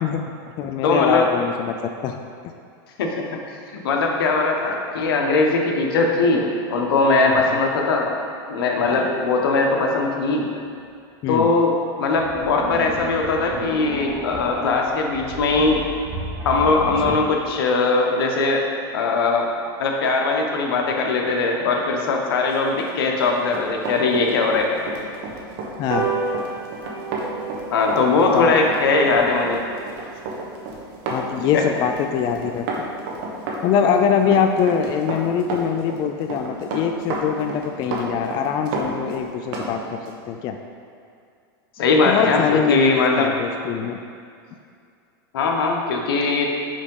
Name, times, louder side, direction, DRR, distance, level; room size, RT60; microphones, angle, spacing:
voice 1, 0.0-1.7 2.0-2.2 7.2-7.6 8.8-9.1 11.2-11.5 17.0-17.2 25.8-26.1 27.9-28.5 31.1-32.7 33.6-40.6 42.0-44.0, left 7 dB, 35° left, 5 dB, 0.3 m, -23 dB
voice 2, 0.8-1.3 3.0-3.2 3.7-8.1 8.5-10.5 11.3-11.7 12.0-15.8 16.4-18.6 18.9-19.5 19.8-24.8 27.7-29.6 31.5-31.6 41.8-43.3 45.3-46.5, left 3 dB, 85° left, 1 dB, 1.0 m, -20 dB
sound 1, 10.7-10.8 12.1-17.2, right 1 dB, 25° right, 1.2 m, -33 dB
Run, 22.7-39.7 40.1-40.2, right 3 dB, 60° right, 1.2 m, -31 dB
sound 2, 25.9-32.7 33.1-33.2 33.5-33.6 33.9-34.0 34.3-34.4 34.6-34.9 35.3-35.4, right 4 dB, 80° right, 1.2 m, -33 dB
5.1 x 4.7 x 5.3 m, 2.4 s
supercardioid pair, 135°, 12 cm